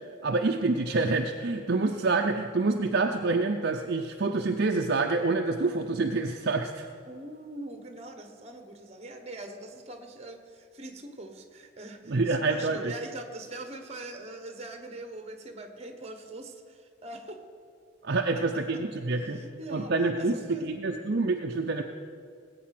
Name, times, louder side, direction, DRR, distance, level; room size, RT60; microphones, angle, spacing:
voice 1, 0.2-6.9 12.1-12.9 18.0-19.4 19.7-21.8, right 3 dB, 50° right, 3 dB, 0.6 m, -27 dB
voice 2, 7.1-17.4 18.3-18.4 19.2-19.9 20.2-20.8, right 2 dB, 30° right, 6 dB, 1.2 m, -42 dB
19.0 x 8.4 x 5.9 m, 2.4 s
head